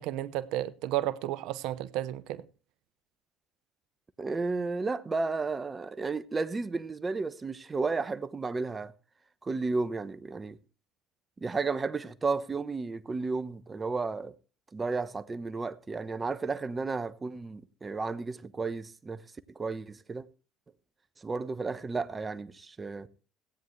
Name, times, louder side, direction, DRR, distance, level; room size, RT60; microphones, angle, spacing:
voice 1, 0.0-2.4, right 14 dB, 75° right, 0.9 m, -32 dB
voice 2, 4.2-8.9 9.4-10.6 11.4-14.4 14.7-19.2 19.5-20.3 21.2-23.1, right 4 dB, 25° right, 1.0 m, -33 dB
16.5 x 9.4 x 3.3 m
supercardioid pair, 75°, 0 cm